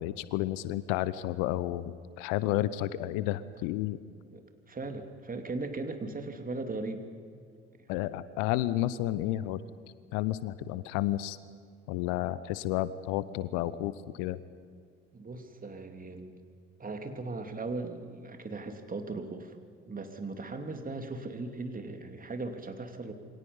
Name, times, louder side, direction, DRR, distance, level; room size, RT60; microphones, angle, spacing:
voice 1, 0.0-4.0 7.9-9.6 10.1-11.4 11.9-14.4, left 14 dB, 65° left, 16 dB, 0.9 m, -31 dB
voice 2, 4.3-7.1 7.9-8.0 15.1-16.4 16.8-19.6 19.9-23.1, right 3 dB, 25° right, 6 dB, 2.9 m, -38 dB
27.5 x 23.5 x 5.5 m, 2.2 s
figure-of-eight pair, 50°, 33 cm